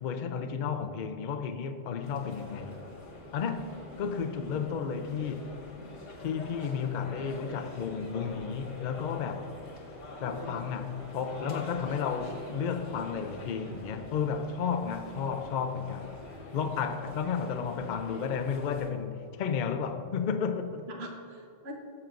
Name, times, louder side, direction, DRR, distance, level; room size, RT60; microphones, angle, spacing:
voice 1, 0.0-2.8 3.3-3.7 4.0-5.5 6.2-9.5 10.2-16.2 16.5-20.8, left 6 dB, 55° left, 0.5 m, -32 dB
sound 1, 2.0-18.9, left 2 dB, 80° left, 1.8 m, -45 dB
voice 2, 7.1-7.5 10.2-10.7 21.0-21.7, right 2 dB, 55° right, 1.3 m, -44 dB
14.0 x 7.3 x 2.5 m
omnidirectional pair, 1.3 m